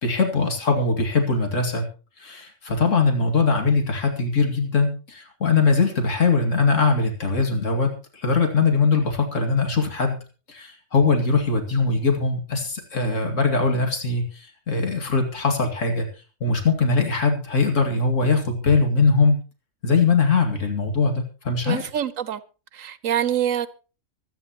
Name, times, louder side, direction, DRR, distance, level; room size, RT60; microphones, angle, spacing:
voice 1, 0.0-1.9 2.2-7.9 8.1-10.2 10.5-16.1 16.4-19.4 19.8-21.8, left 4 dB, 75° left, 2.7 m, -21 dB
voice 2, 21.6-22.4 22.7-23.7, right 10 dB, 85° right, 1.2 m, -25 dB
24.5 x 9.3 x 3.0 m
omnidirectional pair, 1.3 m